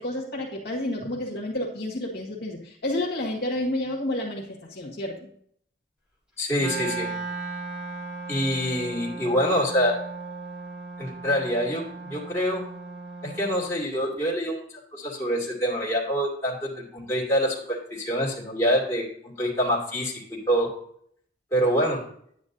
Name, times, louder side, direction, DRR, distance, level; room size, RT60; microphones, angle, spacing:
voice 1, 0.0-5.3, left 1 dB, 60° left, -3 dB, 1.8 m, -30 dB
voice 2, 6.4-7.1 8.3-10.0 11.0-12.6 13.2-20.7 21.5-22.0, equal, 15° left, -4 dB, 2.5 m, -26 dB
Wind instrument woodwind instrument, 6.6-13.7, right 3 dB, 5° right, 2.3 m, -36 dB
9.9 x 9.6 x 2.7 m, 0.66 s
head